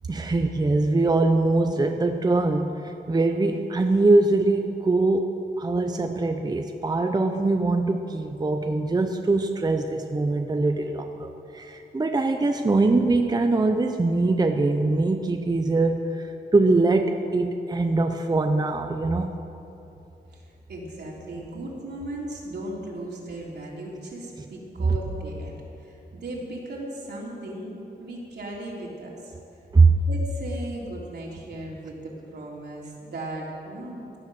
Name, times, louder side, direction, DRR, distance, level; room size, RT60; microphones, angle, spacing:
voice 1, 0.1-16.3 16.5-19.3 29.7-29.9, right 3 dB, 25° right, 5 dB, 0.7 m, -22 dB
voice 2, 20.3-29.3 30.1-34.2, right 1 dB, 75° right, -3 dB, 3.2 m, -37 dB
17.0 x 10.5 x 6.2 m, 2.8 s
wide cardioid pair, 125°, 17 cm